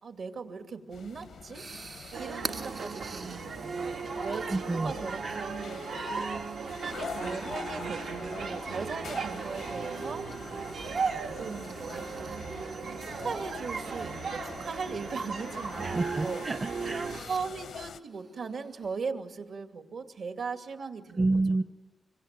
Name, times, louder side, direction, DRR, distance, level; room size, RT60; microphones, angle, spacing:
voice 1, 0.0-1.7 2.2-5.8 6.7-10.3 11.2-12.3 13.0-16.4 17.3-21.3, right 5 dB, 70° right, 6 dB, 2.5 m, -38 dB
sound 1, 0.9-18.0, left 7 dB, 90° left, 0.9 m, -45 dB
sound 2, 1.0-19.0, right 4 dB, 45° right, 1.9 m, -48 dB
sound 3, 2.1-17.2, right 5 dB, 85° right, 2.0 m, -36 dB
voice 2, 4.5-4.9 5.2-5.5 15.8-17.1 21.1-21.6, right 2 dB, 30° right, 8 dB, 0.8 m, -29 dB
26.0 x 25.0 x 9.1 m, 1.2 s
wide cardioid pair, 155°, 0 cm